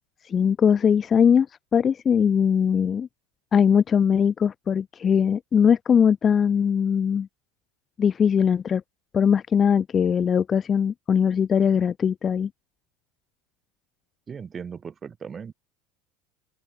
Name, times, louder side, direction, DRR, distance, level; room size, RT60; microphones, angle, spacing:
voice 1, 0.3-1.5 1.7-3.1 3.5-7.3 8.0-8.8 9.1-12.5, left 7 dB, 25° left, 1.2 m, -20 dB
voice 2, 14.3-15.5, right 6 dB, 25° right, 7.3 m, -37 dB
open air
supercardioid pair, 130°, 0 cm